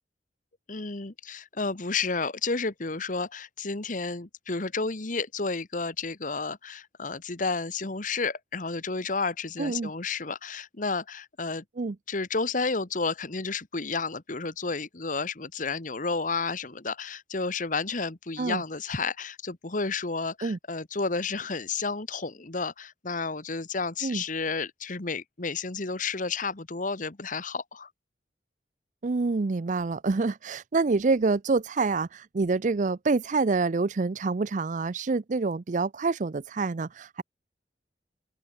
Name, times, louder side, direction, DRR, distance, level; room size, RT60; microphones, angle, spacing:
voice 1, 0.7-11.6 12.1-27.9, left 4 dB, 45° left, 1.4 m, -31 dB
voice 2, 9.6-9.9 11.8-12.0 18.4-18.6 20.4-20.6 24.0-24.2 29.0-37.2, right 3 dB, 45° right, 0.5 m, -27 dB
open air
head